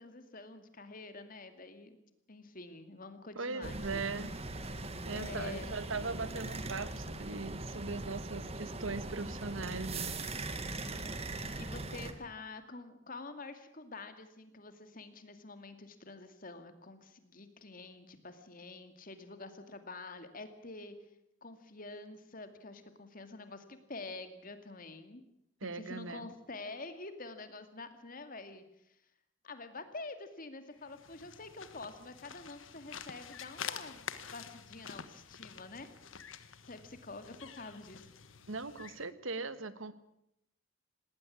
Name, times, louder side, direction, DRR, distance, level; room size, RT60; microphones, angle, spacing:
voice 1, 0.0-2.0 2.3-4.0 5.1-5.9 10.8-21.0 21.4-25.2 25.7-29.0 29.4-35.9 36.2-38.1, left 3 dB, 45° left, 9 dB, 2.3 m, -47 dB
voice 2, 3.3-4.3 5.0-10.2 25.6-26.3 38.5-39.9, right 3 dB, 85° right, 13 dB, 1.5 m, -39 dB
sound 1, 3.6-12.1, right 2 dB, 30° right, 1.9 m, -40 dB
sound 2, 30.8-39.1, left 7 dB, 80° left, 1.4 m, -47 dB
19.0 x 18.5 x 8.7 m, 0.80 s
head